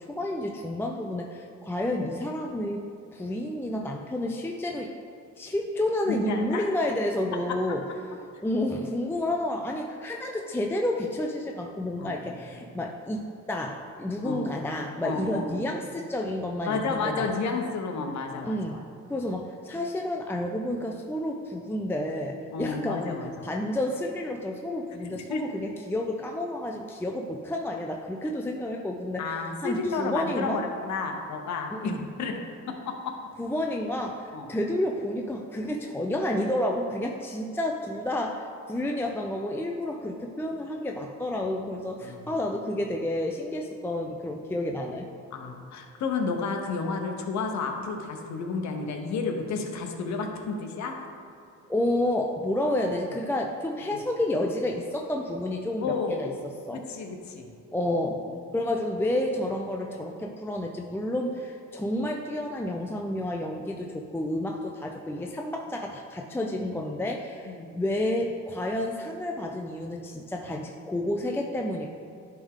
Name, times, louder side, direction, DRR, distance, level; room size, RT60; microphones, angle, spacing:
voice 1, 0.0-4.9 5.4-7.8 8.4-17.3 18.4-18.8 19.1-30.6 31.7-32.1 33.4-45.1 51.7-56.8 57.7-58.2 58.5-71.9, left 1 dB, 10° left, 1 dB, 0.4 m, -30 dB
voice 2, 6.1-6.6 12.0-12.4 14.2-14.5 15.0-15.6 16.6-18.8 22.5-23.4 25.0-25.4 29.2-31.9 32.2-32.4 32.7-33.1 34.3-34.5 42.0-42.3 45.3-50.9 53.9-54.0 55.8-56.4 56.7-57.5 67.5-67.7, left 4 dB, 65° left, 3 dB, 0.9 m, -31 dB
10.5 x 3.5 x 3.7 m, 2.6 s
cardioid pair, 90°, 30 cm